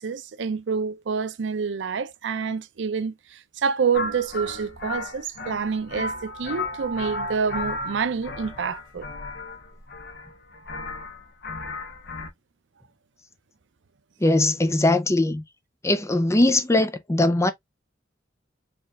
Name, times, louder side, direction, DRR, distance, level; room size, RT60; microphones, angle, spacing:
voice 1, 0.0-9.1, right 6 dB, 85° right, 0.5 m, -27 dB
sound 1, 3.9-12.3, left 2 dB, 65° left, 0.9 m, -34 dB
voice 2, 14.2-15.4 15.8-17.5, left 2 dB, 15° left, 0.5 m, -20 dB
4.4 x 3.2 x 2.3 m
head